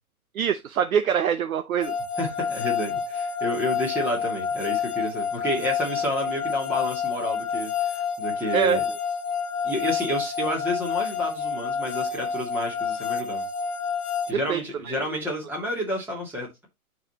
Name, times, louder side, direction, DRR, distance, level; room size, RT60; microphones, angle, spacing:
voice 1, 0.3-2.0 8.5-8.8 14.3-15.0, right 8 dB, 70° right, 0.8 m, -24 dB
sound 1, 1.8-14.3, left 6 dB, 85° left, 1.1 m, -28 dB
voice 2, 2.2-8.8 9.6-13.4 14.3-16.7, left 1 dB, 5° right, 2.5 m, -30 dB
11.5 x 4.2 x 2.9 m
hypercardioid pair, 145°, 44 cm